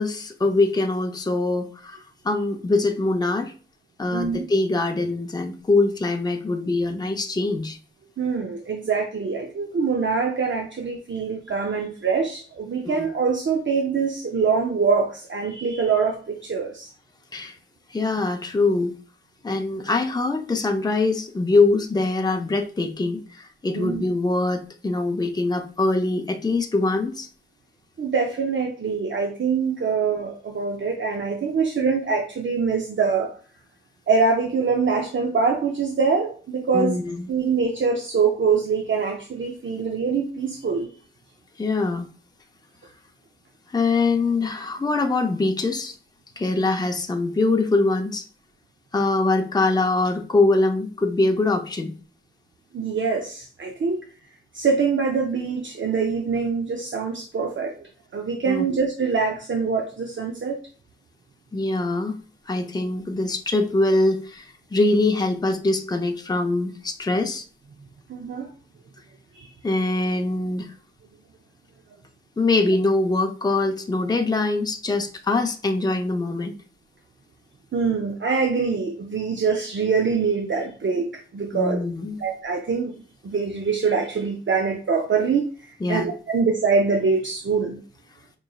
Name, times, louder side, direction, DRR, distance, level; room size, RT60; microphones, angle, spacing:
voice 1, 0.0-3.5 4.0-7.8 12.8-13.1 17.3-17.6 17.9-18.9 19.4-27.3 36.7-37.3 41.6-42.1 43.7-45.9 46.4-48.3 48.9-51.9 58.5-58.8 61.5-62.2 62.5-67.4 69.6-70.7 72.4-76.5 81.5-82.2 85.8-86.1, left 2 dB, 20° left, 4 dB, 0.5 m, -23 dB
voice 2, 4.1-4.5 8.2-16.9 23.7-24.0 28.0-33.3 34.1-37.0 37.3-40.9 52.7-54.0 54.5-60.6 68.1-68.5 69.3-69.5 77.7-81.8 82.2-82.9 83.2-85.5 85.9-87.8, right 5 dB, 70° right, 2 dB, 0.5 m, -24 dB
5.1 x 3.1 x 2.3 m, 0.40 s
wide cardioid pair, 85°, 20 cm